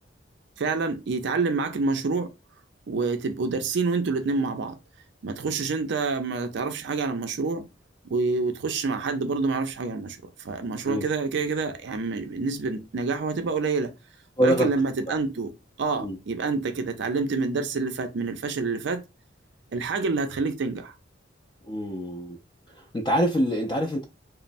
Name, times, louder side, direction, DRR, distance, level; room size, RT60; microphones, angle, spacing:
voice 1, 0.6-2.3 2.9-4.8 5.2-7.6 8.1-13.9 14.4-15.5 15.8-19.0 19.7-20.9, right 4 dB, 65° right, 0.5 m, -27 dB
voice 2, 14.4-14.7 15.1-15.2 16.0-16.2 21.6-22.4 22.8-24.0, right 1 dB, 25° left, 0.4 m, -25 dB
3.0 x 2.0 x 2.5 m
head